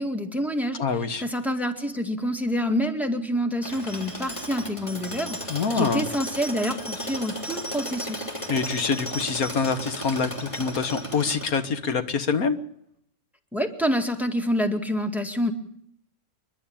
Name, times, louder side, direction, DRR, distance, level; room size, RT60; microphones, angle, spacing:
voice 1, 0.0-0.8 1.2-8.3 13.5-15.5, equal, ahead, 6 dB, 2.0 m, -27 dB
voice 2, 0.8-1.2 5.5-6.1 8.5-12.6, left 5 dB, 75° left, 10 dB, 1.8 m, -25 dB
Tools, 3.6-11.9, equal, 20° left, 3.2 m, -35 dB
28.5 x 11.5 x 8.8 m, 0.69 s
omnidirectional pair, 1.5 m